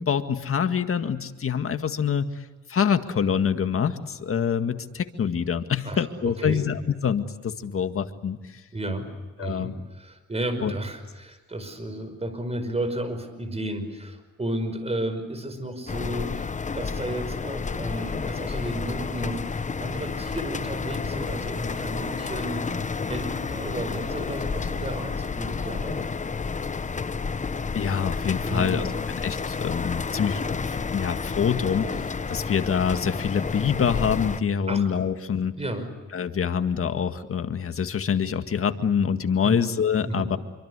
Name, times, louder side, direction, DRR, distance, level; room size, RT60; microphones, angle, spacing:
voice 1, 0.0-8.6 9.4-9.7 10.6-10.7 27.7-28.9 29.2-35.5 36.1-40.4, left 7 dB, 45° left, 8 dB, 1.9 m, -26 dB
voice 2, 8.7-9.1 9.4-22.7 23.1-26.0 28.5-28.8 34.7-34.9 35.5-35.9 39.4-39.6 40.0-40.3, right 1 dB, 20° right, 10 dB, 5.3 m, -33 dB
sound 1, 15.9-34.4, left 5 dB, 25° left, 0.9 m, -30 dB
27.0 x 24.5 x 8.2 m, 1.2 s
cardioid pair, 90°, 30 cm